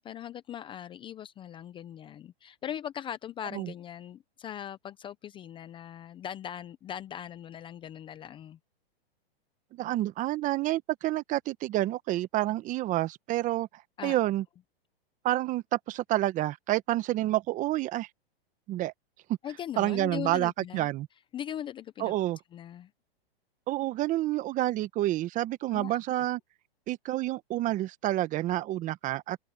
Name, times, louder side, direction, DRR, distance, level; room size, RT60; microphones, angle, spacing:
voice 1, 0.0-8.6 14.0-14.2 19.4-20.9 21.3-22.1 22.5-22.9 25.7-26.0, left 10 dB, 15° left, 0.6 m, -40 dB
voice 2, 9.8-13.7 14.0-14.4 15.2-18.1 18.7-18.9 19.8-21.1 22.0-22.4 23.7-26.4 26.9-29.4, right 15 dB, 25° right, 1.1 m, -29 dB
hypercardioid pair, 135°, 30 cm